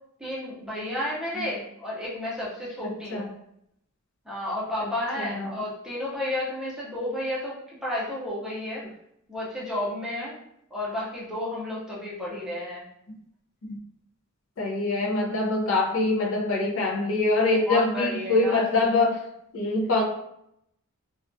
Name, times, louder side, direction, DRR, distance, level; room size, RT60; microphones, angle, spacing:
voice 1, 0.2-3.3 4.3-8.8 9.3-10.3 10.7-12.8 17.7-18.7, left 1 dB, 5° right, -7 dB, 0.6 m, -32 dB
voice 2, 2.8-3.3 4.8-4.9 5.2-5.6 13.7-13.8 14.6-19.2 19.5-20.0, left 2 dB, 65° left, 0 dB, 0.5 m, -24 dB
2.3 x 2.2 x 2.5 m, 0.76 s
head